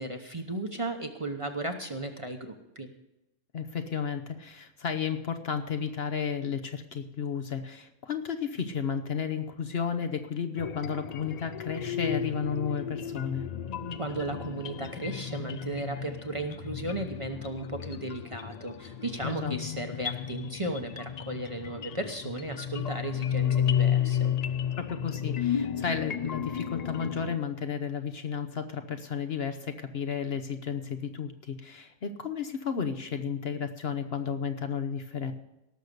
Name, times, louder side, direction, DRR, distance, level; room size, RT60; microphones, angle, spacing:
voice 1, 0.0-2.9 14.0-24.3, right 2 dB, 25° right, 5 dB, 0.9 m, -35 dB
voice 2, 3.5-13.4 19.2-19.5 24.8-35.3, left 6 dB, 55° left, 8 dB, 1.0 m, -33 dB
sound 1, 10.6-27.4, left 9 dB, 85° left, 0.3 m, -33 dB
18.0 x 6.6 x 6.7 m, 0.92 s
omnidirectional pair, 1.4 m